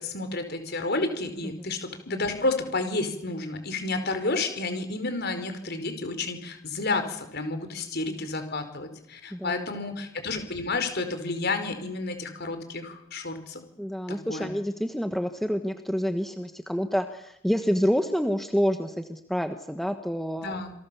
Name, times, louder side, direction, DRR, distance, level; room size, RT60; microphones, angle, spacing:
voice 1, 0.0-13.6 14.1-14.5 20.4-20.7, left 3 dB, 50° left, 8 dB, 4.9 m, -31 dB
voice 2, 1.4-1.7 9.3-9.9 13.8-20.7, equal, ahead, 6 dB, 1.3 m, -28 dB
28.5 x 23.0 x 7.1 m, 0.80 s
head